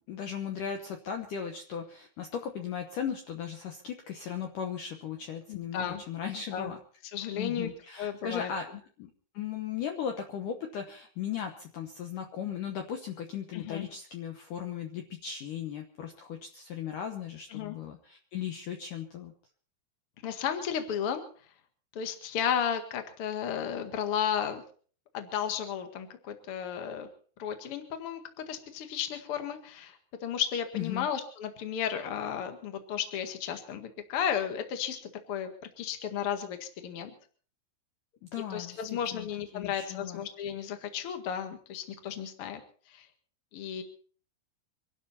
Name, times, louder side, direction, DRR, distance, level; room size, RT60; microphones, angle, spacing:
voice 1, 0.1-6.8 7.3-8.7 9.0-19.3 30.7-31.1 38.2-38.8 39.1-39.3 39.5-40.2, left 8 dB, 85° left, 4 dB, 1.8 m, -37 dB
voice 2, 5.5-6.0 6.5-6.7 7.1-7.7 8.0-8.5 13.5-13.9 17.5-17.8 20.2-21.2 21.9-24.6 25.1-27.1 27.4-35.0 35.3-35.5 35.8-37.1 38.5-42.6 42.9-43.1 43.5-43.8, left 8 dB, 65° left, 7 dB, 1.4 m, -33 dB
25.0 x 12.0 x 4.3 m, 0.43 s
omnidirectional pair, 5.6 m